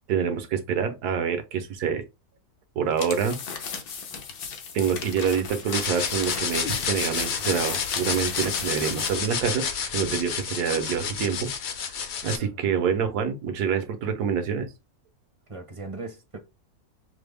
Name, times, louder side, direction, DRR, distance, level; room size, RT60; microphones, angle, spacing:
voice 1, 0.1-2.0 2.8-3.4 4.7-9.7 9.9-11.5 12.2-14.7, right 7 dB, 85° right, 1.3 m, -26 dB
sound 1, 2.9-9.3, left 6 dB, 75° left, 1.4 m, -36 dB
sound 2, 5.7-12.4, left 6 dB, 55° left, 0.8 m, -30 dB
voice 2, 12.3-12.7 15.5-16.4, right 3 dB, 35° right, 0.5 m, -39 dB
5.8 x 2.1 x 3.4 m
omnidirectional pair, 1.6 m